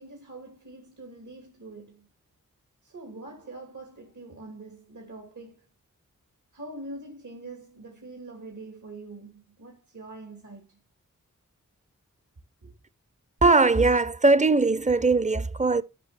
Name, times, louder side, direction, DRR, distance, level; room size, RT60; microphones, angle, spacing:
voice 1, 0.0-2.1 2.8-5.7 6.5-10.8 12.6-12.7, right 2 dB, 70° right, 2.4 m, -44 dB
voice 2, 13.4-15.8, right 3 dB, 25° right, 0.6 m, -20 dB
12.0 x 5.9 x 4.1 m
cardioid pair, 45°, 31 cm